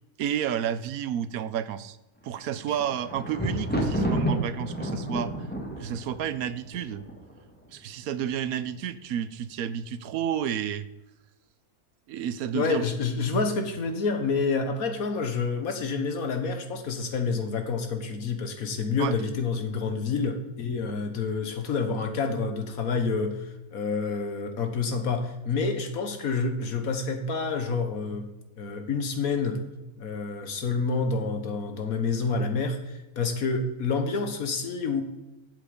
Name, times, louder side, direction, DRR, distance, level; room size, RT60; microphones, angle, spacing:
voice 1, 0.2-2.0 2.2-5.3 5.8-7.0 7.7-10.9 12.1-12.8 19.0-19.1, right 9 dB, 80° right, 14 dB, 1.1 m, -31 dB
Thunder, 2.4-7.5 8.2-8.7 9.0-9.1, right 1 dB, 5° left, 1.6 m, -30 dB
voice 2, 12.5-28.3 28.6-29.6 30.0-35.0, left 4 dB, 75° left, 7 dB, 1.7 m, -28 dB
11.5 x 7.8 x 5.3 m, 1.0 s
omnidirectional pair, 1.5 m